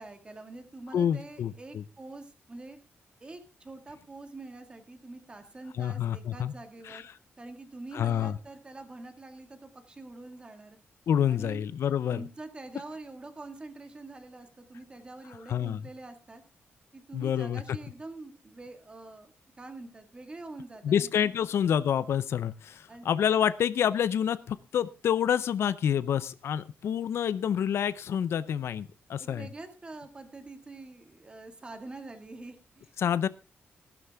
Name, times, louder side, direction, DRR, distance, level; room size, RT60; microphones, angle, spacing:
voice 1, 0.0-2.8 3.2-7.1 7.4-10.8 11.3-11.6 12.1-16.4 16.9-21.3 22.9-23.1 29.2-32.9, right 2 dB, 20° right, 7 dB, 1.9 m, -45 dB
voice 2, 0.9-1.8 5.8-6.5 6.9-7.0 7.9-8.4 11.1-12.3 15.5-15.8 17.1-17.8 20.8-29.5 33.0-33.3, left 9 dB, 75° left, 17 dB, 0.6 m, -28 dB
15.0 x 12.0 x 3.5 m, 0.29 s
wide cardioid pair, 155°, 4 cm